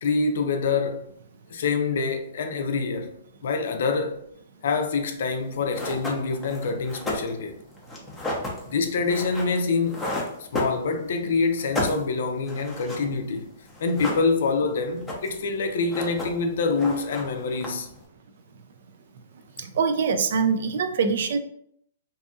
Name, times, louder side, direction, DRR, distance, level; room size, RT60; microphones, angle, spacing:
voice 1, 0.0-1.0 1.5-3.1 3.4-4.2 4.6-7.6 8.6-10.2 10.5-13.5 13.8-17.9, left 4 dB, 70° left, 0.4 m, -26 dB
sound 1, 5.4-5.5 5.7-11.2 11.5-13.4 13.7-14.6 14.9-15.5 15.8-16.5 16.8-18.0, left 1 dB, 5° left, 0.6 m, -32 dB
voice 2, 19.6-21.4, right 5 dB, 65° right, 0.3 m, -23 dB
2.6 x 2.6 x 2.3 m
hypercardioid pair, 150°, 0 cm